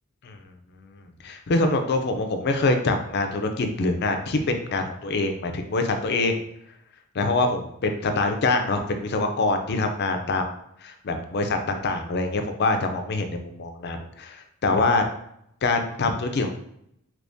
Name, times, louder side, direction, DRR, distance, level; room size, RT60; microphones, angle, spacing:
voice 1, 1.2-4.4 4.7-6.4 7.2-10.5 10.8-14.4 14.6-15.0 15.6-16.6, left 3 dB, 50° left, 5 dB, 0.4 m, -24 dB
3.4 x 3.0 x 2.6 m, 0.76 s
head